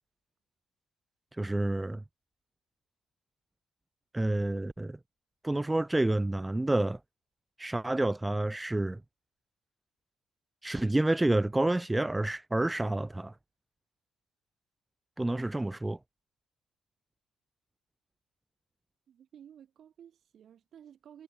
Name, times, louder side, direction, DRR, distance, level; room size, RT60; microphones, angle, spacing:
voice 1, 1.3-2.0 4.1-5.0 5.4-7.0 7.6-9.0 10.6-13.3 15.2-16.0, right 2 dB, 10° right, 0.9 m, -29 dB
voice 2, 19.1-21.2, right 9 dB, 55° right, 5.4 m, -54 dB
supercardioid pair, 75°, 0 cm